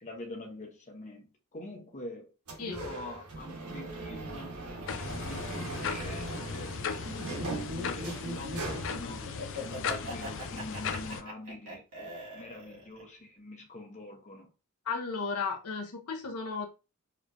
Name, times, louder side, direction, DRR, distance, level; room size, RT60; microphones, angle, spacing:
voice 1, 0.0-1.3 1.5-2.3 2.6-4.6 4.9-6.7 7.5-14.5, left 1 dB, 35° left, 1.0 m, -45 dB
sound 1, 2.5-9.0, right 2 dB, 85° right, 1.4 m, -40 dB
sound 2, 4.9-11.2, left 6 dB, 60° left, 0.5 m, -37 dB
Laughter, 7.0-13.0, left 1 dB, 60° right, 1.9 m, -40 dB
voice 2, 14.8-16.7, left 4 dB, 90° left, 1.0 m, -34 dB
4.8 x 3.2 x 2.6 m
head